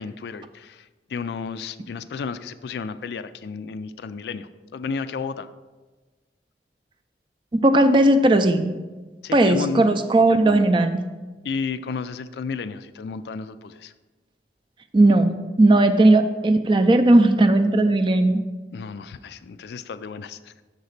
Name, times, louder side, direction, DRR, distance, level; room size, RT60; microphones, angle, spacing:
voice 1, 0.0-5.5 9.2-10.0 11.4-13.9 18.7-20.6, left 5 dB, 70° left, 12 dB, 0.3 m, -32 dB
voice 2, 7.5-8.7 9.3-11.0 14.9-18.4, right 2 dB, 30° right, 9 dB, 0.4 m, -17 dB
6.6 x 4.1 x 6.4 m, 1.2 s
head